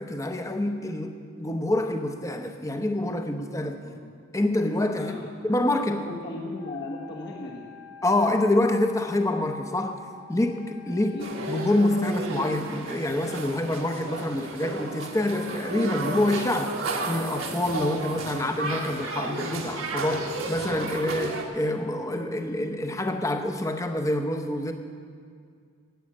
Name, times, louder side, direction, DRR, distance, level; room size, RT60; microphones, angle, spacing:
voice 1, 0.0-3.8 4.3-5.1 5.4-6.1 8.0-10.0 10.3-16.8 17.1-24.7, left 1 dB, 15° left, 6 dB, 0.8 m, -26 dB
voice 2, 3.8-4.2 5.0-7.6 11.1-11.3 18.3-18.4, left 2 dB, 55° left, -2 dB, 1.3 m, -38 dB
Wind instrument woodwind instrument, 6.5-11.8, left 7 dB, 80° left, 1.1 m, -48 dB
sound 1, 11.2-21.4, right 2 dB, 75° right, 1.4 m, -33 dB
11.5 x 8.6 x 8.5 m, 2.2 s
head